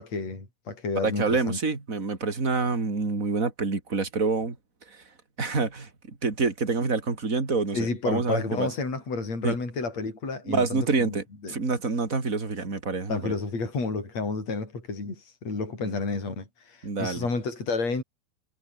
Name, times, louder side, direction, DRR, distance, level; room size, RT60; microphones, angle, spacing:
voice 1, 0.0-1.6 7.7-11.2 11.4-11.5 13.1-18.0, left 3 dB, 35° left, 9.0 m, -31 dB
voice 2, 1.0-4.6 4.9-5.0 5.4-8.7 9.4-9.5 10.4-13.3 15.8-15.9 16.8-17.3, right 4 dB, 20° right, 3.1 m, -27 dB
omnidirectional pair, 5.3 m